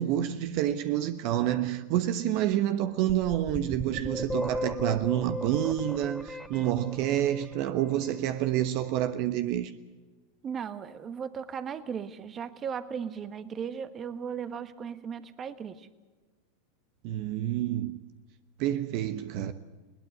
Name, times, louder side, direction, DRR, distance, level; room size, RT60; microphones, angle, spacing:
voice 1, 0.0-9.7 17.0-18.0 18.6-19.5, right 12 dB, 55° right, 1.1 m, -28 dB
sound 1, 3.1-7.9, left 1 dB, ahead, 1.5 m, -36 dB
voice 2, 10.4-15.9, right 7 dB, 30° right, 1.4 m, -36 dB
21.0 x 19.0 x 8.0 m
hypercardioid pair, 105°, 0 cm